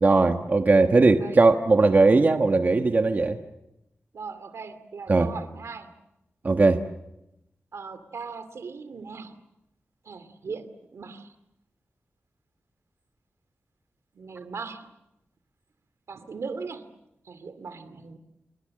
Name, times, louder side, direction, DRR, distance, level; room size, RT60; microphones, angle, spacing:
voice 1, 0.0-3.4 5.1-5.3 6.4-6.8, right 3 dB, 35° right, 6 dB, 1.2 m, -19 dB
voice 2, 4.1-5.9 7.7-9.4 10.0-11.3 14.1-14.9 16.1-16.9 17.2-18.2, right 5 dB, 80° right, 12 dB, 2.4 m, -39 dB
28.0 x 23.5 x 7.6 m, 0.87 s
wide cardioid pair, 150°, 5 cm